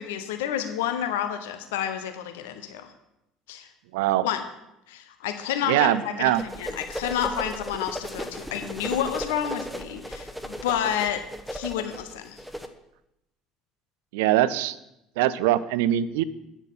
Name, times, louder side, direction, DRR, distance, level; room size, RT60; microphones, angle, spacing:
voice 1, 0.0-2.9 3.5-3.7 4.2-4.4 4.9-11.2 11.5-12.4, left 9 dB, 65° left, 8 dB, 0.8 m, -30 dB
voice 2, 3.9-4.3 5.7-6.4 14.1-14.8 15.2-16.2, right 13 dB, 65° right, 17 dB, 0.4 m, -22 dB
sound 1, 6.4-12.7, equal, ahead, 0.9 m, -36 dB
9.1 x 7.1 x 5.7 m, 0.87 s
figure-of-eight pair, 60°, 0 cm